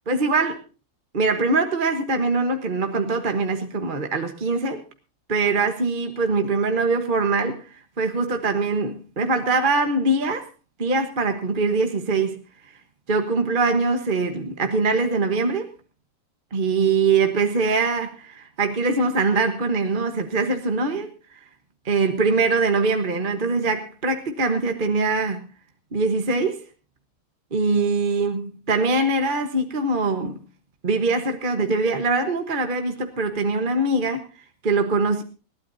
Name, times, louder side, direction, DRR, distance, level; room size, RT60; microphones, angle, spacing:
voice 1, 0.1-0.6 1.1-4.8 5.3-10.5 10.8-12.4 13.1-15.7 16.5-21.4 21.8-25.4 25.9-26.6 27.5-30.4 30.8-34.2 34.6-35.2, right 3 dB, 30° right, 6 dB, 1.1 m, -23 dB
21.0 x 15.5 x 2.7 m, 0.32 s
omnidirectional pair, 2.2 m